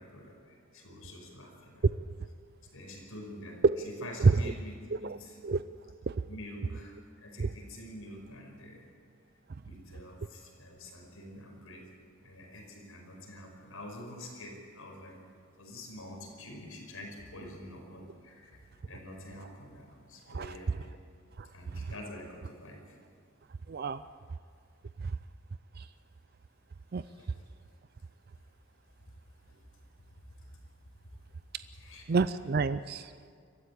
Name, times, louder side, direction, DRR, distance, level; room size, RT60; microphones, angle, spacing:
voice 1, 0.0-1.9 2.7-4.8 5.0-5.4 6.3-8.9 9.6-11.9 12.2-15.2 15.6-20.9 21.5-23.0 27.0-27.4 29.5-29.6 31.7-32.2, left 1 dB, 75° left, 1 dB, 5.4 m, -47 dB
voice 2, 23.7-24.0 25.0-25.2 25.8-25.9 26.9-27.0 32.1-33.1, right 4 dB, 45° right, 13 dB, 0.4 m, -27 dB
22.5 x 14.5 x 8.5 m, 2.1 s
head